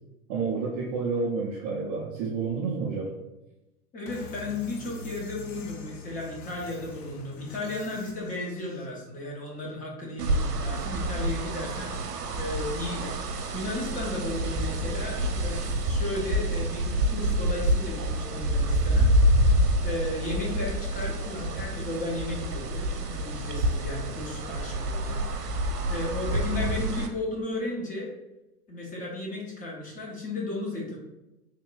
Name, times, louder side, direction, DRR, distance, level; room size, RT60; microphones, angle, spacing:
voice 1, 0.3-3.1, right 4 dB, 25° right, -3 dB, 0.4 m, -29 dB
voice 2, 3.9-13.2 13.5-19.1 19.4-19.5 19.8-25.2 25.9-28.1 28.7-31.0, left 2 dB, 15° left, -2 dB, 0.7 m, -34 dB
sound 1, 4.1-8.9, left 4 dB, 55° left, 0.8 m, -44 dB
sound 2, 10.2-27.1, equal, 75° right, 0.8 m, -27 dB
3.5 x 2.2 x 3.8 m, 0.95 s
hypercardioid pair, 115°, 47 cm